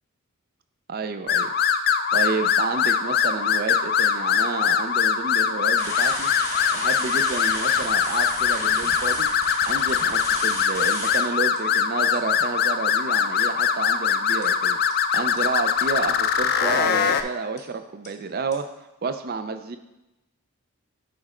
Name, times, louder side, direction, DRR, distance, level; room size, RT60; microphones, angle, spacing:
voice 1, 0.9-1.5 2.1-6.3 6.7-9.3 9.7-18.7 19.0-19.8, right 4 dB, 45° right, 9 dB, 0.4 m, -30 dB
sound 1, 1.3-17.2, left 7 dB, 45° left, 0.3 m, -22 dB
sound 2, 5.8-11.2 11.6-11.7 12.1-12.3 14.4-14.5 14.9-15.0 15.4-15.5 15.8-15.9 16.2-16.3 16.7-16.8 17.1-17.2 17.6-17.7 18.0-18.1 18.5-18.6, left 1 dB, 15° left, 1.1 m, -33 dB
8.6 x 3.2 x 4.9 m, 0.94 s
head